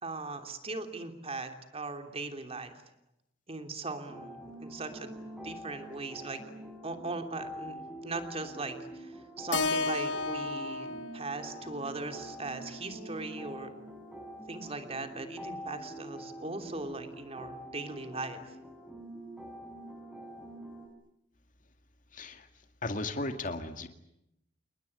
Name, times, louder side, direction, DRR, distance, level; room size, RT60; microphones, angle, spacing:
voice 1, 0.0-2.7 3.5-5.1 5.4-6.4 6.8-13.7 14.5-18.6, right 3 dB, 35° right, 6 dB, 3.1 m, -39 dB
sound 1, 4.1-20.9, equal, ahead, 6.0 m, -45 dB
Keyboard (musical), 9.5-13.7, left 3 dB, 75° left, 1.5 m, -35 dB
voice 2, 22.1-22.5 22.8-23.9, left 2 dB, 45° left, 7 dB, 2.1 m, -35 dB
29.5 x 20.0 x 9.8 m, 0.85 s
head